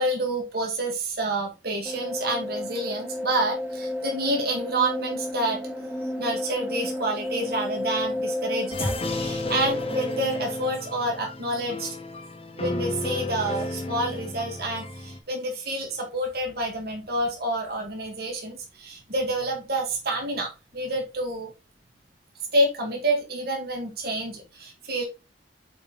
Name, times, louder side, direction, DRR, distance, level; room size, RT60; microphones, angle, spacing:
voice 1, 0.0-5.6 6.2-11.9 12.5-21.5 22.5-25.0, right 1 dB, 55° right, 0 dB, 2.3 m, -28 dB
sound 1, 1.9-10.7, left 1 dB, 10° right, 1.4 m, -32 dB
sound 2, 8.7-15.2, left 2 dB, 30° left, 1.0 m, -32 dB
7.0 x 4.8 x 3.8 m, 0.27 s
head